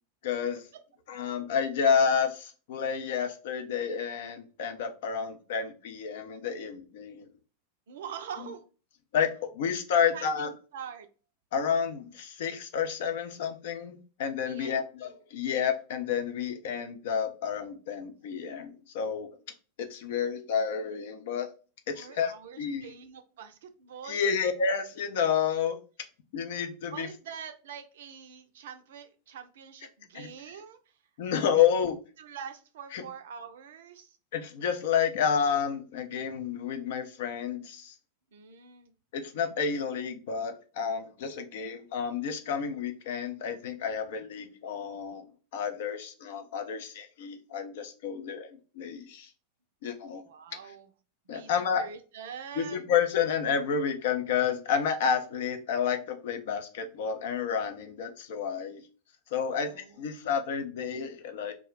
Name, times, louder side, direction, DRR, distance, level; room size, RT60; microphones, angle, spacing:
voice 1, 0.2-0.7 1.1-7.3 9.1-10.5 11.5-19.3 19.8-21.5 21.9-22.9 24.0-25.8 26.3-27.1 30.1-30.3 31.2-31.9 32.9-33.0 34.3-37.9 39.1-49.3 49.8-50.2 51.3-51.8 52.6-58.8 59.3-61.5, left 7 dB, 55° left, 7 dB, 0.5 m, -30 dB
voice 2, 7.9-8.6 9.9-11.1 14.5-14.9 21.9-24.2 26.9-30.8 31.6-31.7 32.2-34.2 38.3-38.9 50.3-50.9 51.3-52.9 59.5-60.0, right 7 dB, 60° right, 8 dB, 0.4 m, -44 dB
2.3 x 2.1 x 3.8 m, 0.36 s
figure-of-eight pair, 90°, 0 cm